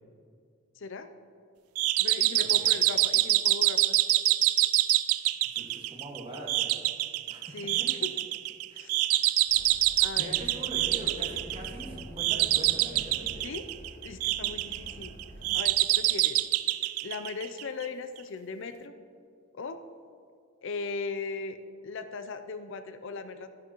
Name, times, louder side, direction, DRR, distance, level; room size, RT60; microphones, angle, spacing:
voice 1, 0.8-1.1 2.0-4.0 7.5-8.0 8.7-9.1 10.0-10.4 13.4-13.7 14.0-15.2 15.5-16.4 17.0-18.9 19.5-19.8 20.6-21.6 21.8-23.5, left 4 dB, 60° left, 9 dB, 0.5 m, -38 dB
sound 1, 1.8-17.9, right 16 dB, 90° right, 0.3 m, -26 dB
voice 2, 5.5-6.8 7.3-7.9 8.7-8.8 9.1-9.2 10.2-13.5 14.4-14.5, equal, 25° right, -2 dB, 1.7 m, -42 dB
Train, 9.4-15.6, right 1 dB, 40° left, 3.0 m, -47 dB
12.5 x 10.5 x 3.0 m, 2.3 s
head